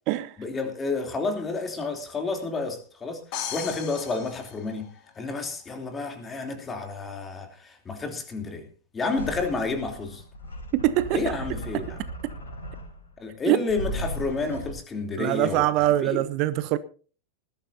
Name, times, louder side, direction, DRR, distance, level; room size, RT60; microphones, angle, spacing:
voice 1, 0.4-4.9 5.1-8.7 8.9-10.2 11.1-12.0 13.2-16.3, left 3 dB, 20° left, 3.1 m, -30 dB
sound 1, 3.3-5.3, left 9 dB, 40° left, 2.3 m, -36 dB
sound 2, 9.2-13.1 13.7-14.7, equal, 70° left, 5.0 m, -36 dB
voice 2, 10.7-11.2 13.5-13.6 15.2-16.8, right 15 dB, 45° right, 0.7 m, -23 dB
20.0 x 13.5 x 2.7 m
figure-of-eight pair, 90°, 0 cm